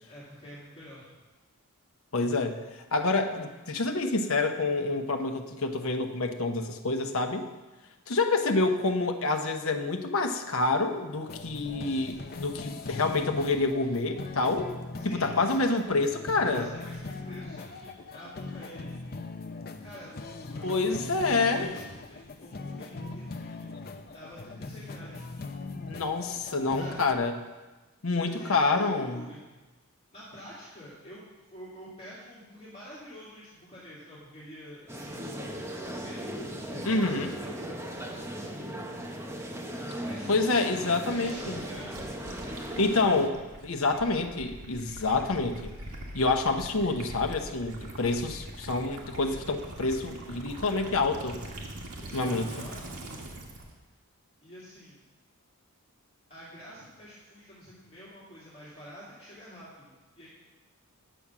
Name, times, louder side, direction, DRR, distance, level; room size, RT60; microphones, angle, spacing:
voice 1, 0.0-1.1 15.0-15.8 16.4-18.9 19.8-25.2 26.7-27.1 28.1-29.5 30.1-31.2 31.5-35.3 35.8-36.2 36.6-37.5 39.4-39.5 39.9-41.9 52.0-53.4 54.4-55.1 56.3-60.3, equal, 25° left, -9 dB, 2.4 m, -47 dB
voice 2, 2.1-2.6 2.9-7.5 8.1-14.7 15.0-16.7 20.6-21.7 25.9-27.3 28.0-29.2 36.9-37.3 40.3-41.6 42.8-43.4 43.6-45.7 46.1-51.4 52.1-52.5, left 3 dB, 65° left, 6 dB, 0.9 m, -27 dB
sound 1, 11.3-27.1, left 3 dB, 40° left, 0.6 m, -40 dB
sound 2, 34.9-43.3, right 1 dB, 10° right, 0.9 m, -37 dB
Gurgling / Liquid, 41.1-53.7, right 1 dB, 90° right, 1.9 m, -43 dB
10.0 x 7.1 x 6.1 m, 1.2 s
head